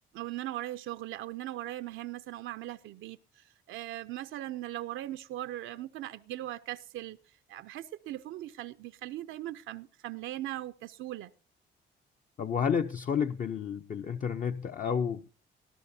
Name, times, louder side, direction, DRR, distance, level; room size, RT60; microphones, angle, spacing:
voice 1, 0.1-7.2 7.5-11.3, right 14 dB, 85° right, 0.5 m, -39 dB
voice 2, 12.4-15.3, left 7 dB, 40° left, 0.6 m, -30 dB
18.5 x 13.0 x 2.7 m
cardioid pair, 90°, 20 cm